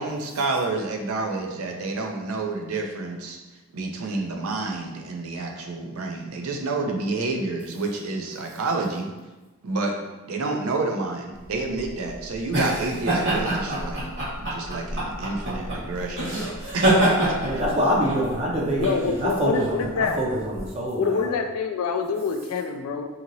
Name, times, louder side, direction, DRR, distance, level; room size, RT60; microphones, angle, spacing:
voice 1, 0.0-3.4 3.7-9.1 9.6-9.9 10.3-14.1 14.4-17.4, right 3 dB, 75° right, 2 dB, 0.5 m, -29 dB
sound 1, 11.5-20.7, right 1 dB, 50° right, 1.2 m, -26 dB
voice 2, 17.4-21.3, equal, 30° right, -3 dB, 0.5 m, -25 dB
voice 3, 18.8-20.2 21.0-23.0, left 5 dB, 75° left, 5 dB, 0.3 m, -26 dB
2.8 x 2.8 x 2.6 m, 1.2 s
head